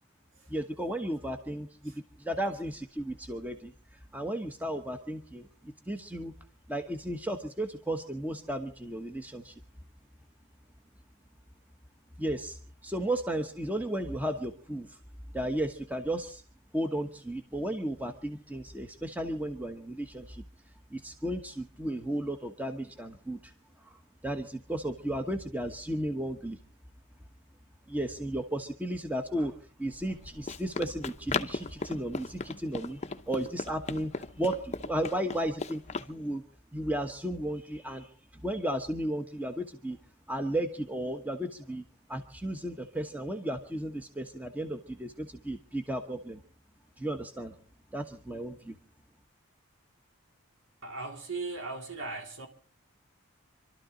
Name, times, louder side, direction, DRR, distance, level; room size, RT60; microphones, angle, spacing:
voice 1, 0.5-1.9 2.2-3.7 4.1-6.3 6.7-9.5 12.2-12.6 12.8-15.0 15.3-16.4 16.7-20.4 20.9-23.4 23.9-24.0 24.2-26.6 27.9-29.5 29.8-33.0 33.3-36.4 36.7-40.0 40.3-41.8 42.1-46.4 47.0-47.5 47.9-48.8, right 1 dB, 5° right, 1.1 m, -34 dB
Run, 29.9-36.1, left 4 dB, 30° left, 0.8 m, -37 dB
voice 2, 50.8-52.5, right 3 dB, 60° right, 3.3 m, -38 dB
26.5 x 12.5 x 3.9 m
head